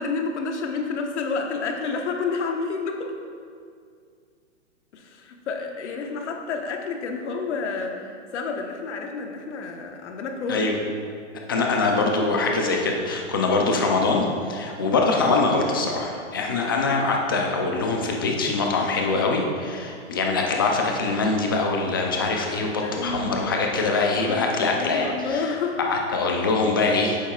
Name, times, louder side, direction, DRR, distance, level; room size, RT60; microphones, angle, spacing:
voice 1, 0.0-3.1 4.9-10.6 16.6-16.7 22.8-23.5 24.1-25.8, left 4 dB, 65° left, 3 dB, 1.1 m, -30 dB
voice 2, 11.5-27.2, left 3 dB, 20° left, 1 dB, 0.3 m, -23 dB
9.4 x 7.1 x 2.3 m, 2.2 s
hypercardioid pair, 155°, 37 cm